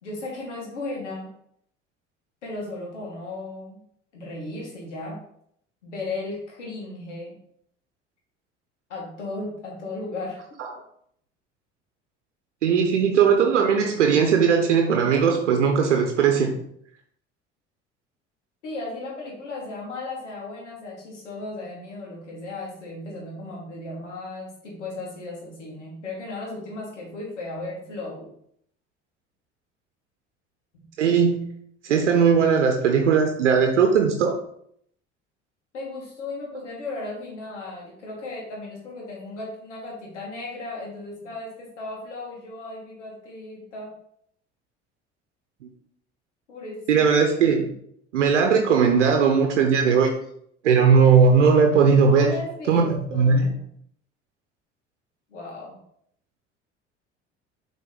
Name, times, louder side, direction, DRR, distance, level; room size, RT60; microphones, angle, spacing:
voice 1, 0.0-1.3 2.4-3.8 4.1-5.2 5.8-7.3 8.9-10.6 18.6-28.3 35.7-43.9 46.5-47.0 52.1-52.8 53.1-53.6 55.3-55.8, left 2 dB, 85° left, -2 dB, 2.1 m, -36 dB
voice 2, 12.6-16.6 31.0-31.5 31.8-34.3 45.6-45.7 46.9-47.7 48.1-50.1 50.6-52.3 52.7-53.5, right 6 dB, 80° right, 3 dB, 0.9 m, -19 dB
7.4 x 3.9 x 3.9 m, 0.68 s
figure-of-eight pair, 60°, 35 cm